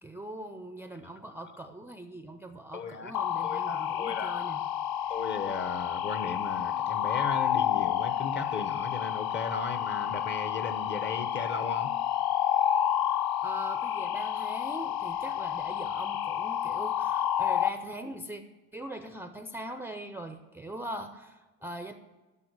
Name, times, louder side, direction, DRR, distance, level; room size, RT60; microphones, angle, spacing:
voice 1, 0.0-4.6 13.1-18.4 18.7-21.9, right 1 dB, 5° right, 7 dB, 0.4 m, -41 dB
voice 2, 2.7-3.1 3.4-4.4 5.1-11.9, left 4 dB, 30° left, 11 dB, 0.8 m, -36 dB
sound 1, 3.1-17.7, left 10 dB, 75° left, 0.7 m, -30 dB
10.5 x 6.2 x 8.0 m, 1.2 s
cardioid pair, 130°, 35 cm